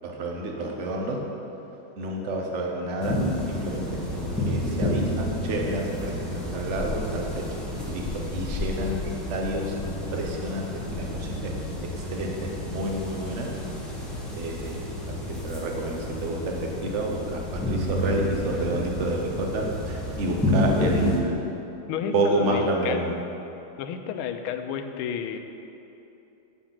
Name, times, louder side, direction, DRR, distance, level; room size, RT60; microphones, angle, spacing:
voice 1, 0.0-1.2 2.0-7.4 7.9-8.1 8.3-9.0 9.3-11.5 11.9-13.5 14.4-14.9 15.2-21.4 22.1-23.1, right 1 dB, 45° right, 0 dB, 1.1 m, -29 dB
sound 1, 3.0-21.2, left 1 dB, ahead, 1.1 m, -30 dB
voice 2, 20.6-21.1 21.9-23.1 23.8-25.4, left 7 dB, 85° left, 7 dB, 1.4 m, -32 dB
7.8 x 7.3 x 5.8 m, 3.0 s
omnidirectional pair, 2.3 m